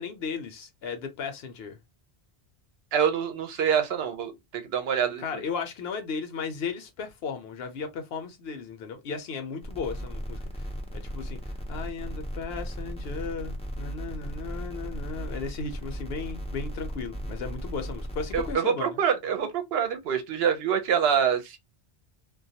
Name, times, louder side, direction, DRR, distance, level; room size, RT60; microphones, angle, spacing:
voice 1, 0.0-1.8 5.2-18.9, left 5 dB, 70° left, 0.8 m, -35 dB
voice 2, 2.9-5.4 18.3-21.6, right 8 dB, 70° right, 0.8 m, -26 dB
sound 1, 9.6-18.5, equal, 10° left, 0.3 m, -36 dB
2.3 x 2.2 x 2.6 m
omnidirectional pair, 1.1 m